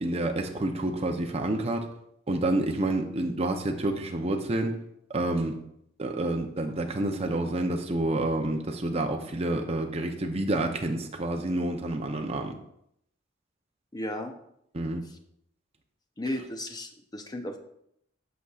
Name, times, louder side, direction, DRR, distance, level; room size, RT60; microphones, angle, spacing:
voice 1, 0.0-1.9 2.3-4.7 5.1-5.6 6.0-12.6 14.7-15.0, right 2 dB, 30° right, 3 dB, 0.6 m, -28 dB
voice 2, 13.9-14.3 16.2-17.6, left 1 dB, 20° left, 6 dB, 0.6 m, -34 dB
8.1 x 6.3 x 2.4 m, 0.75 s
head